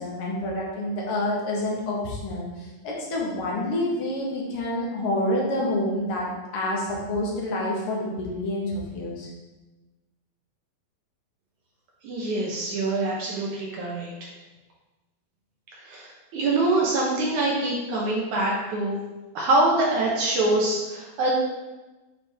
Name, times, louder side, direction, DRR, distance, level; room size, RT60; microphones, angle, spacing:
voice 1, 0.0-9.3, left 1 dB, 50° left, -3 dB, 1.8 m, -28 dB
voice 2, 12.0-14.1 15.8-19.0 19.3-21.3, right 2 dB, 65° right, -3 dB, 2.2 m, -24 dB
9.4 x 5.1 x 3.6 m, 1.1 s
omnidirectional pair, 4.3 m